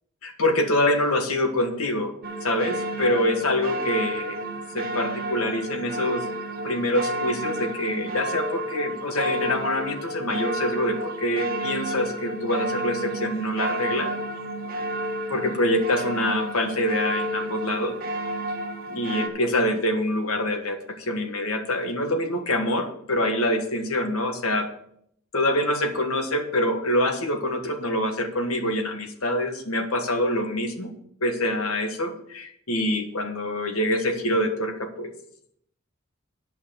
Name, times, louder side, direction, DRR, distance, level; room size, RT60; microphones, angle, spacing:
voice 1, 0.2-2.1 2.4-4.4 4.7-6.3 6.6-14.1 15.3-18.0 18.9-24.7 25.3-30.9 31.2-35.1, left 1 dB, 80° left, 5 dB, 1.6 m, -25 dB
sound 1, 2.2-19.3, right 1 dB, 45° right, 1.4 m, -31 dB
11.5 x 5.5 x 6.7 m, 0.70 s
head